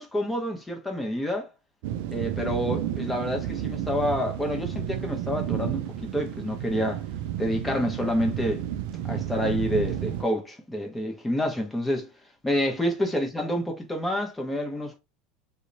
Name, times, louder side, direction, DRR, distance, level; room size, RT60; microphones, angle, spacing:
voice 1, 0.0-1.5 2.1-7.0 7.4-8.6 9.0-12.1 12.4-15.0, equal, 10° left, 0.9 m, -28 dB
sound 1, 1.8-10.2, right 10 dB, 65° right, 0.3 m, -31 dB
2.8 x 2.1 x 2.6 m
hypercardioid pair, 90°, 0 cm